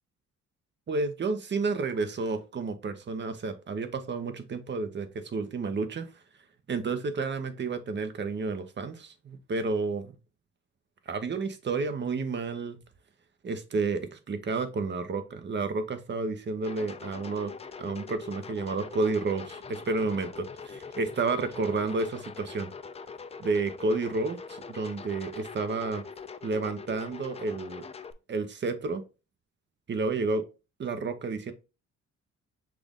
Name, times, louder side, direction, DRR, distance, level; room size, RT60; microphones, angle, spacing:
voice 1, 0.9-6.2 6.7-10.1 11.1-12.8 13.4-17.5 17.8-22.7 23.4-26.1 26.4-27.9 28.3-29.0 29.9-30.4 30.8-31.5, right 3 dB, 35° right, 9 dB, 0.8 m, -31 dB
sound 1, 16.6-28.1, left 5 dB, 20° left, 0.4 m, -43 dB
5.9 x 2.5 x 3.6 m, 0.30 s
cardioid pair, 90°, 30 cm